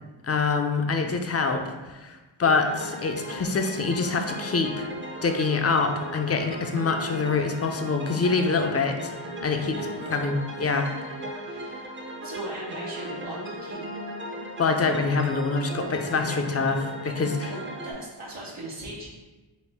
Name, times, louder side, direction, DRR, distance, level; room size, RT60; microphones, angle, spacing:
voice 1, 0.2-4.9 5.2-9.1 9.4-9.8 10.1-10.9 14.6-17.5, left 4 dB, 35° left, 5 dB, 0.4 m, -25 dB
sound 1, 2.4-17.9, right 1 dB, 25° right, 0.5 m, -37 dB
voice 2, 9.7-10.3 10.6-11.0 11.4-11.9 12.2-13.9 17.2-19.1, right 1 dB, 80° right, -6 dB, 0.9 m, -39 dB
4.3 x 2.0 x 3.4 m, 1.2 s
cardioid pair, 50°, 49 cm